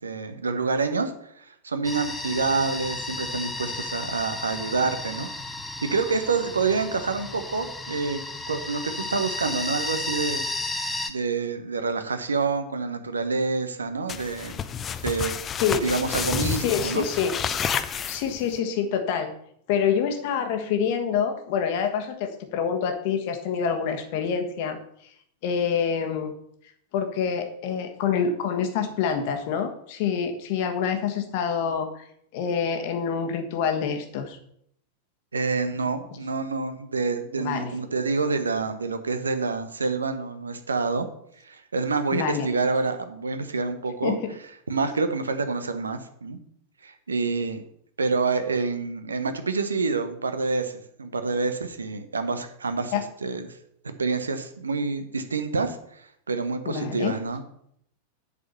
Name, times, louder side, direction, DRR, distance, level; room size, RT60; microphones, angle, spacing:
voice 1, 0.0-5.3 5.8-8.2 8.5-10.4 11.1-14.6 15.0-15.3 15.8-17.0 35.3-41.1 41.4-44.2 44.7-46.4 46.8-47.6 48.0-53.6 54.0-57.4, right 4 dB, 75° right, 9 dB, 1.0 m, -27 dB
sound 1, 1.8-11.1, left 2 dB, 10° left, 1.0 m, -33 dB
sound 2, 14.1-18.6, left 7 dB, 25° left, 0.5 m, -30 dB
voice 2, 16.6-17.3 18.1-19.3 19.7-25.1 25.4-26.3 26.9-32.1 32.3-34.4 37.4-37.7 42.1-42.5 44.0-44.3 52.9-53.0 56.6-57.2, left 7 dB, 50° left, 6 dB, 1.3 m, -26 dB
8.3 x 5.1 x 6.8 m, 0.69 s
figure-of-eight pair, 90°, 0 cm